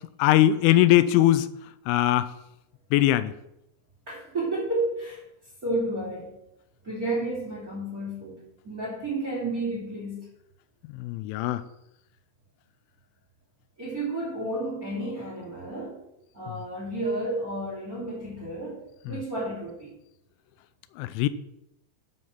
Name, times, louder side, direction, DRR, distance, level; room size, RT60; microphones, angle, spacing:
voice 1, 0.2-1.5 1.9-2.3 2.9-3.3 10.9-11.6 19.1-19.2 21.0-21.3, left 14 dB, 90° left, 14 dB, 3.1 m, -21 dB
voice 2, 4.1-5.2 5.6-6.3 6.8-10.3 13.8-16.0 16.3-20.0, right 2 dB, 25° right, -5 dB, 2.3 m, -31 dB
7.9 x 7.9 x 5.8 m, 0.82 s
omnidirectional pair, 5.4 m